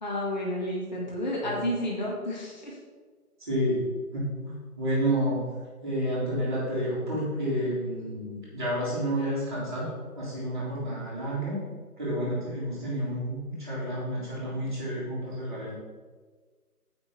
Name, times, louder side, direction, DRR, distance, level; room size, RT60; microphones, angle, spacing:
voice 1, 0.0-2.7, left 1 dB, 30° left, -4 dB, 1.5 m, -31 dB
voice 2, 3.4-3.8 4.1-5.4 5.8-11.6 12.0-15.7, equal, 15° right, -13 dB, 1.6 m, -30 dB
8.6 x 5.2 x 4.3 m, 1.5 s
figure-of-eight pair, 165°, 46 cm